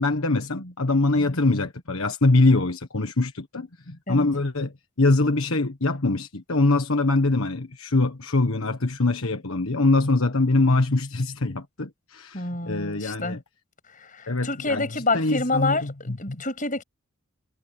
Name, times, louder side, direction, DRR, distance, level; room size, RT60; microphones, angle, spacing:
voice 1, 0.0-13.4 14.3-16.4, left 2 dB, 70° left, 1.5 m, -23 dB
voice 2, 12.3-13.4 13.9-16.8, left 3 dB, 35° left, 7.0 m, -28 dB
head